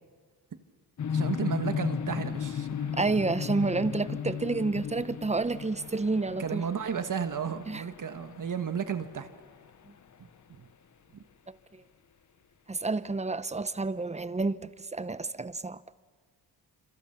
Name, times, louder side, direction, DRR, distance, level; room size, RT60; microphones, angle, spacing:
sound 1, 1.0-9.9, left 7 dB, 45° left, 1.1 m, -35 dB
voice 1, 1.1-2.9 6.4-9.3 10.6-10.7 11.1-11.2, right 7 dB, 50° right, 1.7 m, -33 dB
voice 2, 3.0-6.6 7.7-7.8 12.7-15.8, right 3 dB, 15° right, 0.9 m, -29 dB
27.0 x 26.5 x 6.0 m
cardioid pair, 80°, 41 cm